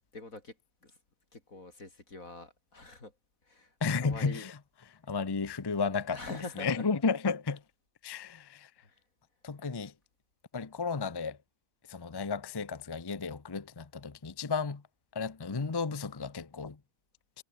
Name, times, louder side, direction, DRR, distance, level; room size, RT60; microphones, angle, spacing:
voice 1, 0.1-0.6 0.8-1.0 1.3-3.1 3.4-3.8 4.0-4.5 6.1-6.9 8.8-9.0 9.6-9.8, left 2 dB, 80° left, 5.1 m, -45 dB
voice 2, 3.8-4.5 5.1-6.2 6.6-7.6 8.0-8.7 9.4-9.9 10.5-11.4 11.9-14.8 15.1-16.8, left 4 dB, 20° left, 0.7 m, -33 dB
omnidirectional pair, 1.4 m